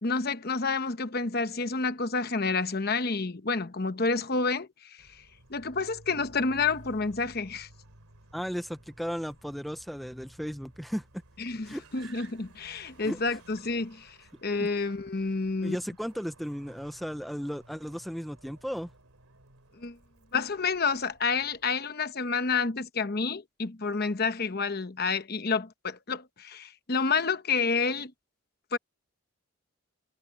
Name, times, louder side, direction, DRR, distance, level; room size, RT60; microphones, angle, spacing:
voice 1, 0.0-5.2 5.5-7.7 11.4-15.8 19.8-20.0 20.3-28.1 28.7-28.8, left 4 dB, 45° left, 1.0 m, -29 dB
Car, 5.0-21.7, right 2 dB, 90° right, 3.1 m, -55 dB
voice 2, 8.3-11.0 11.7-12.1 13.0-13.2 14.6-14.7 15.6-18.9, equal, ahead, 0.6 m, -35 dB
head